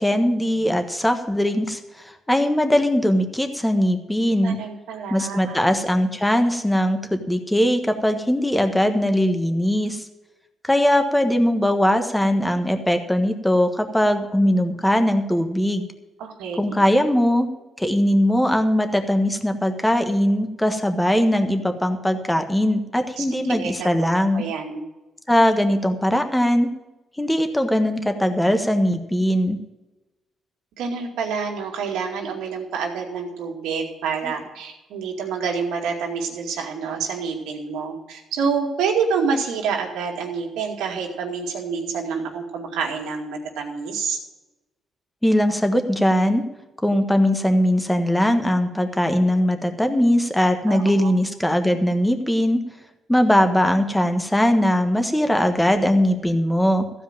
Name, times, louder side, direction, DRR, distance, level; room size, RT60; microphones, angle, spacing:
voice 1, 0.0-4.6 5.1-10.1 10.6-15.9 16.6-17.5 17.8-24.4 25.3-26.7 27.2-29.6 34.2-34.3 45.2-46.4 46.8-52.6 53.1-56.9, equal, 5° left, 7 dB, 1.3 m, -20 dB
voice 2, 4.4-5.6 16.2-16.6 23.2-23.9 24.3-24.8 30.8-44.2 50.7-51.1, right 5 dB, 90° right, 1 dB, 2.4 m, -27 dB
15.0 x 5.1 x 9.0 m, 1.1 s
cardioid pair, 90°, 0 cm